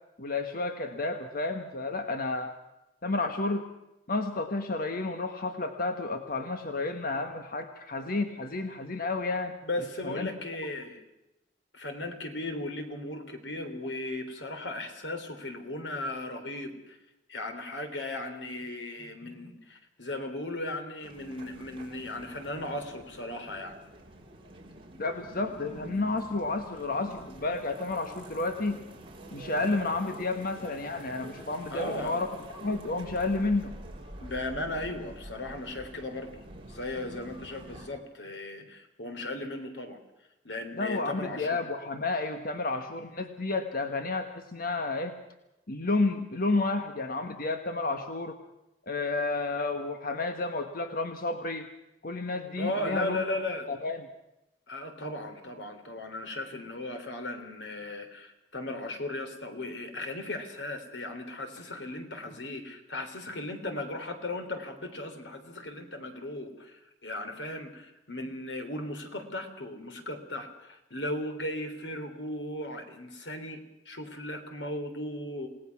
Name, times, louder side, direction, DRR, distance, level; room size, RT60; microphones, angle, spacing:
voice 1, 0.2-2.5 3.0-3.6 4.1-9.6 10.0-10.3 25.0-28.8 29.3-32.3 32.6-33.7 40.8-45.1 45.7-48.4 48.9-51.7 52.0-53.2 53.7-54.1, left 3 dB, 55° left, 7 dB, 1.4 m, -31 dB
voice 2, 9.6-11.0 11.7-17.0 17.3-23.8 31.7-32.2 34.2-40.0 40.4-41.6 52.6-53.7 54.7-75.5, left 1 dB, 85° left, 6 dB, 3.5 m, -36 dB
sound 1, 21.0-37.9, right 1 dB, 30° right, 3.6 m, -47 dB
28.5 x 18.5 x 6.0 m, 0.91 s
head